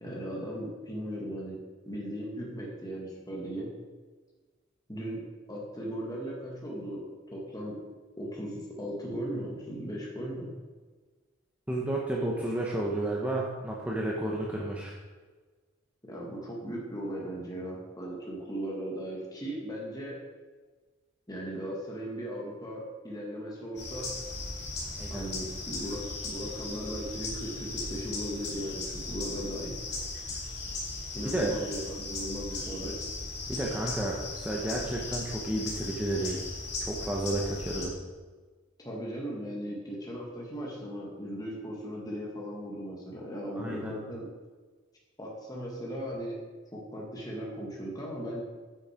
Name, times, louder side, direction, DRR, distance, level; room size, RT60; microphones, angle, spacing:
voice 1, 0.0-1.6 1.8-3.7 4.9-5.2 5.5-7.8 8.2-10.5 16.1-20.2 21.3-24.1 25.1-29.8 31.1-33.0 38.8-44.2 45.2-46.4 46.9-48.4, equal, 20° left, -3 dB, 1.7 m, -37 dB
voice 2, 11.7-15.0 25.0-25.3 31.3-31.5 33.5-36.4 36.8-37.9 43.6-43.9, right 1 dB, 5° right, -3 dB, 0.9 m, -31 dB
sound 1, 23.8-37.8, left 3 dB, 50° left, 2.7 m, -37 dB
8.7 x 6.4 x 5.1 m, 1.4 s
head